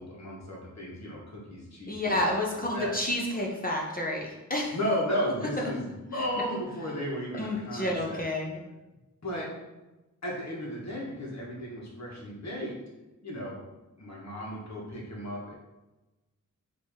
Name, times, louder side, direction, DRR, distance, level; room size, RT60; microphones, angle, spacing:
voice 1, 0.0-2.2 2.7-2.9 4.7-8.2 9.2-9.5 10.2-12.8 13.2-13.6 14.0-15.5, equal, 55° left, -3 dB, 1.4 m, -34 dB
voice 2, 1.9-4.7 5.4-5.7 6.1-6.3 7.4-8.6, left 1 dB, 25° left, -2 dB, 0.7 m, -30 dB
4.5 x 2.9 x 3.5 m, 1.0 s
wide cardioid pair, 115°, 33 cm